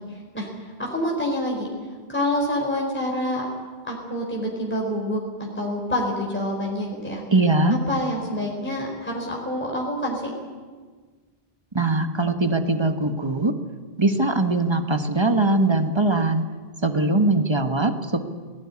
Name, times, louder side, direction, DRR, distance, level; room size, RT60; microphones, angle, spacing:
voice 1, 0.1-0.5 0.8-1.7 2.1-3.5 3.8-7.2 7.7-10.3, left 1 dB, 10° left, -2 dB, 4.2 m, -27 dB
voice 2, 7.3-7.8 11.7-13.5 14.0-16.4 16.8-18.2, right 2 dB, 25° right, 7 dB, 1.4 m, -21 dB
19.5 x 18.0 x 9.8 m, 1.5 s
omnidirectional pair, 1.0 m